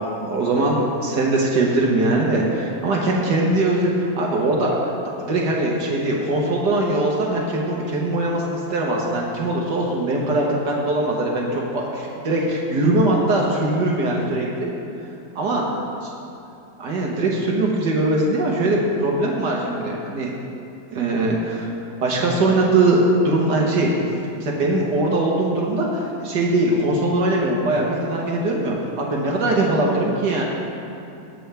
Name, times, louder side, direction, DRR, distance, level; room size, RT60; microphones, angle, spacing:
voice 1, 0.0-4.9 5.2-14.7 15.4-15.6 16.8-20.3 20.9-21.7 22.0-23.9 24.4-30.4, right 2 dB, 75° right, -2 dB, 1.8 m, -21 dB
19.5 x 7.9 x 3.4 m, 2.7 s
omnidirectional pair, 1.8 m